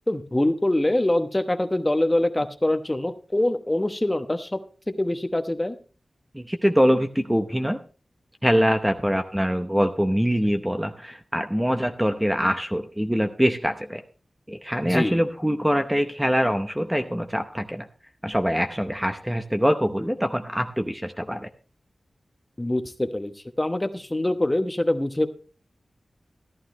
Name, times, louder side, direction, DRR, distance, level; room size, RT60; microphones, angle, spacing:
voice 1, 0.1-4.6 4.9-5.7 14.8-15.2 22.6-25.3, left 1 dB, 20° left, 8 dB, 1.0 m, -24 dB
voice 2, 6.3-7.8 8.4-14.0 14.5-17.9 18.2-21.5, equal, 5° right, 6 dB, 0.8 m, -24 dB
14.5 x 11.5 x 3.1 m, 0.38 s
wide cardioid pair, 80°, 0 cm